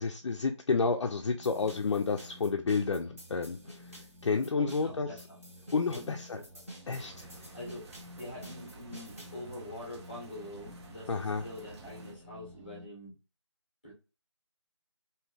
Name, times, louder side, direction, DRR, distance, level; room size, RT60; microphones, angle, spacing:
voice 1, 0.0-3.9 4.2-5.1 5.7-6.4 6.9-7.3 11.1-11.4, left 4 dB, 70° left, 0.4 m, -30 dB
sound 1, 1.4-9.4, equal, 30° right, 0.9 m, -51 dB
sound 2, 1.4-12.9, left 1 dB, 90° right, 0.8 m, -53 dB
voice 2, 4.6-5.4 5.9-7.9 8.2-13.2 13.8-13.9, left 1 dB, 20° left, 0.8 m, -45 dB
sound 3, 6.8-12.1, right 2 dB, 65° right, 1.2 m, -52 dB
2.6 x 2.3 x 3.3 m
figure-of-eight pair, 180°, 15 cm